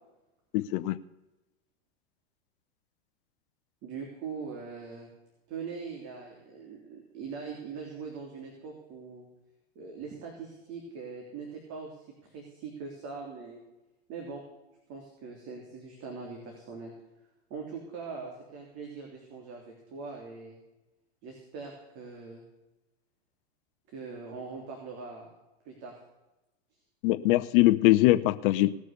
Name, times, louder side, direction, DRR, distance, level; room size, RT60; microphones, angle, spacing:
voice 1, 0.5-1.0 27.0-28.7, left 17 dB, 55° left, 11 dB, 0.7 m, -22 dB
voice 2, 3.8-5.1 5.5-9.3 9.7-13.6 14.1-14.4 14.9-16.9 17.5-20.6 21.2-22.4 23.9-25.3 25.6-25.9, right 5 dB, 50° right, 0 dB, 3.3 m, -41 dB
18.5 x 6.4 x 6.6 m, 0.99 s
hypercardioid pair, 110°, 33 cm